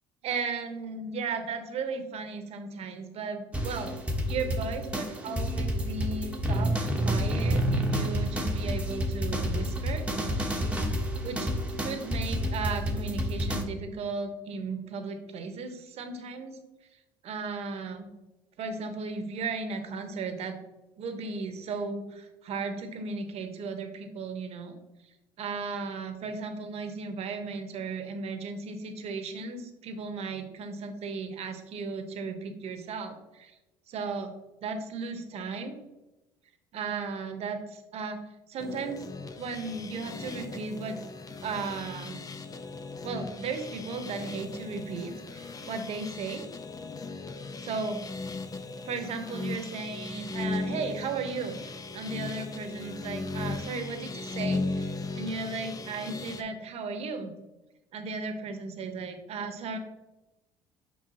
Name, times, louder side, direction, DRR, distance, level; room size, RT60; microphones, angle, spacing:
voice 1, 0.2-3.9 4.3-10.1 11.2-11.5 11.8-16.6 17.2-18.1 18.6-20.6 21.0-24.8 25.4-33.5 33.9-34.3 34.6-35.8 36.7-38.2 38.5-39.1 39.4-41.0 41.4-42.2 43.0-46.4 47.6-48.1 48.9-57.3 57.9-59.8, right 4 dB, 55° right, 7 dB, 1.0 m, -35 dB
sound 1, 3.5-13.6, equal, 10° right, 1.1 m, -29 dB
sound 2, 38.6-56.4, left 3 dB, 30° left, 0.7 m, -37 dB
6.3 x 5.3 x 2.8 m, 1.0 s
hypercardioid pair, 70°, 12 cm